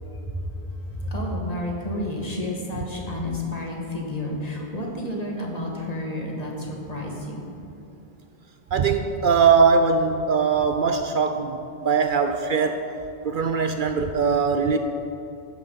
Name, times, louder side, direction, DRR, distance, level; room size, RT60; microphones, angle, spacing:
voice 1, 0.0-7.5, left 1 dB, 40° left, -1 dB, 1.7 m, -31 dB
voice 2, 8.7-12.8 13.2-14.8, right 5 dB, 60° right, 7 dB, 0.7 m, -21 dB
13.5 x 9.7 x 4.0 m, 2.8 s
omnidirectional pair, 1.0 m